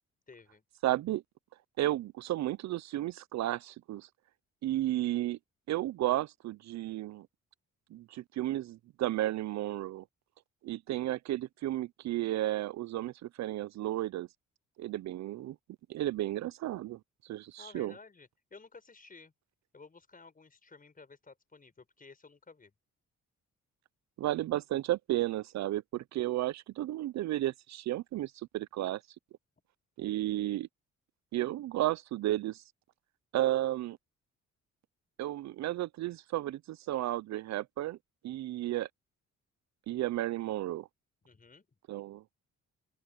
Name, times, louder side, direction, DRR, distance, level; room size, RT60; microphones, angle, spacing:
voice 1, 0.3-0.6 17.6-19.3 19.7-22.7 41.2-41.7, left 4 dB, 30° left, 5.5 m, -54 dB
voice 2, 0.8-1.2 1.8-4.1 4.6-5.4 5.7-7.3 7.9-10.0 10.6-14.3 14.8-15.6 15.9-17.9 24.2-29.0 30.0-30.7 31.3-32.6 33.3-34.0 35.2-38.0 38.2-38.9 39.9-40.9 41.9-42.2, right 14 dB, 65° right, 0.5 m, -33 dB
open air
cardioid pair, 90°, 30 cm